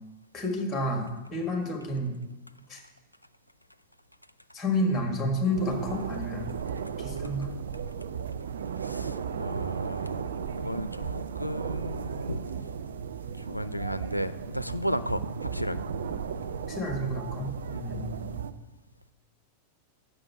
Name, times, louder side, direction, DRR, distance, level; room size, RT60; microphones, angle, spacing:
voice 1, 0.3-2.1 2.7-2.8 4.5-6.5 7.0-7.5 16.7-18.4, left 1 dB, 15° left, 2 dB, 1.7 m, -30 dB
sound 1, 5.5-18.5, right 6 dB, 65° right, 0.4 m, -35 dB
voice 2, 8.8-12.7 13.3-15.9 17.7-17.8, equal, 90° left, 13 dB, 0.4 m, -34 dB
7.7 x 6.3 x 7.3 m, 1.1 s
figure-of-eight pair, 90°, 0 cm